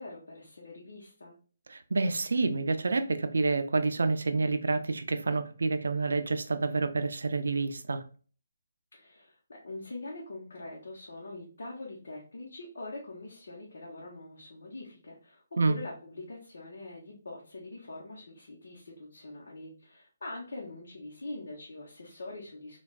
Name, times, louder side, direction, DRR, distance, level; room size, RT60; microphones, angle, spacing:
voice 1, 0.0-1.3 8.9-22.8, left 2 dB, 70° left, 0.8 m, -43 dB
voice 2, 1.7-8.0 15.6-15.8, right 3 dB, 90° right, 0.4 m, -28 dB
3.3 x 2.3 x 2.4 m
hypercardioid pair, 180°, 0 cm